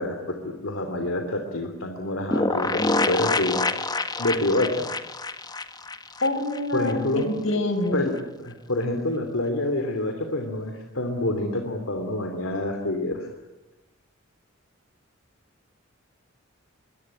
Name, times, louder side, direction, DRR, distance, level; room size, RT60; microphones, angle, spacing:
voice 1, 0.0-3.6 4.2-4.9 6.7-7.3 7.9-13.3, left 1 dB, 80° left, 5 dB, 3.0 m, -27 dB
sound 1, 2.3-6.9 7.2-7.3 7.5-7.6, left 2 dB, 20° left, 1.3 m, -27 dB
voice 2, 6.2-8.0, left 1 dB, 65° left, 9 dB, 4.9 m, -26 dB
25.0 x 23.5 x 10.0 m, 1.0 s
head